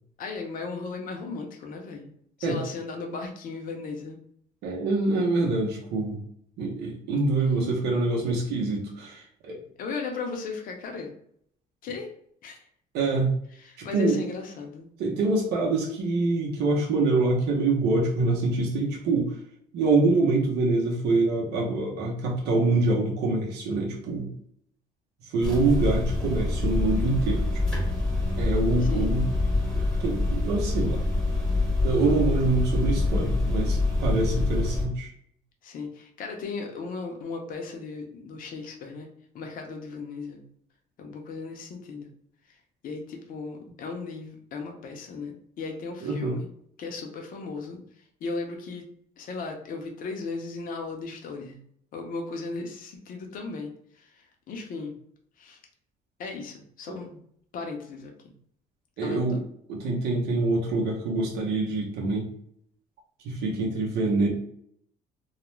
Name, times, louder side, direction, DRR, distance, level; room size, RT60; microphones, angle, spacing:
voice 1, 0.2-2.1 2.4-4.2 7.4-7.8 9.8-11.1 11.8-12.1 12.4-12.6 13.5-14.9 28.8-29.1 35.6-39.1 39.3-40.4 41.0-42.1 42.8-46.5 46.8-47.8 48.2-48.9 49.2-51.6 51.9-55.0 55.4-55.6 56.2-57.2 57.5-58.3 59.0-59.4, left 4 dB, 55° left, 2 dB, 0.6 m, -36 dB
voice 2, 4.6-6.2 6.6-9.6 12.9-13.3 13.8-14.2 15.0-19.3 19.7-24.3 25.3-27.5 27.7-27.9 28.4-29.3 30.0-31.0 31.8-35.1 46.0-46.4 56.9-57.0 59.0-59.4 59.7-62.3 63.2-64.3, right 3 dB, 75° right, -2 dB, 0.7 m, -25 dB
sound 1, 25.4-34.9, left 2 dB, 5° left, 0.8 m, -26 dB
2.3 x 2.0 x 3.0 m, 0.68 s
cardioid pair, 110°, 17 cm